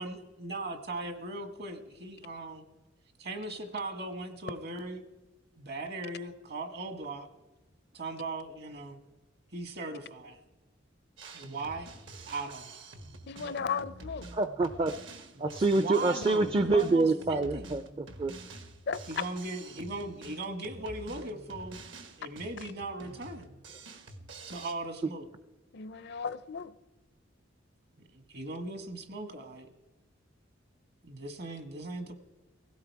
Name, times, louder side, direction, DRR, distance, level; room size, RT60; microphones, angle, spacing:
voice 1, 0.0-2.7 3.2-5.0 5.6-7.3 7.9-9.0 9.5-10.4 11.3-11.9 12.3-12.8 13.3-13.6 15.3-17.7 19.1-21.8 22.2-23.5 24.5-25.3 28.1-29.7 31.0-32.1, right 2 dB, 55° right, 1.5 m, -39 dB
Drum kit, 11.2-24.7, right 2 dB, 70° right, 1.5 m, -48 dB
voice 2, 13.3-14.3 18.9-19.2 25.7-26.7, left 6 dB, 55° left, 0.5 m, -35 dB
voice 3, 14.3-14.9 15.4-18.3, right 3 dB, 25° right, 0.5 m, -26 dB
16.5 x 16.5 x 4.7 m
head